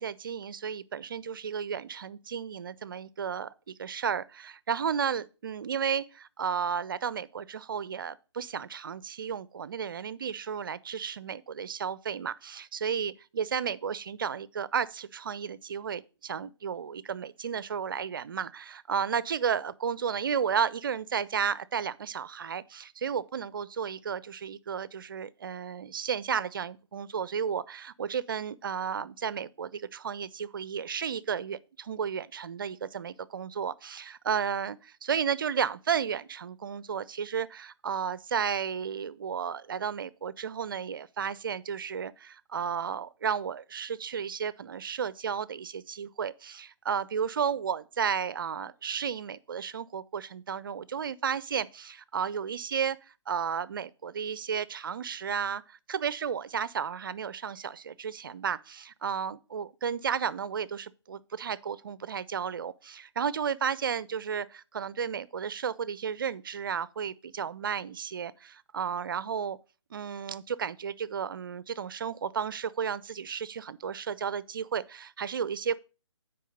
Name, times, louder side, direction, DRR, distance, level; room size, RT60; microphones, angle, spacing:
voice 1, 0.0-53.0 53.3-69.6 69.9-75.8, right 7 dB, 45° right, 0.5 m, -33 dB
9.1 x 4.7 x 5.0 m
figure-of-eight pair, 135°, 15 cm